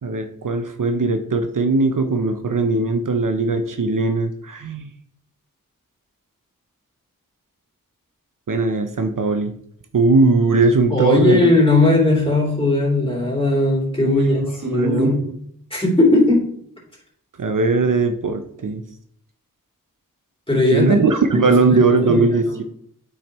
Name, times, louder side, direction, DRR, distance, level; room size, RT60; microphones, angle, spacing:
voice 1, 0.0-4.9 8.5-9.6 9.9-11.5 11.9-12.0 14.0-14.2 14.6-15.3 17.4-18.8 20.7-22.6, right 3 dB, 65° right, 7 dB, 0.7 m, -19 dB
voice 2, 10.9-15.1 15.7-16.4 20.5-21.0 21.3-22.6, left 2 dB, 15° left, -4 dB, 3.3 m, -18 dB
8.6 x 5.8 x 3.1 m, 0.67 s
wide cardioid pair, 45°, 34 cm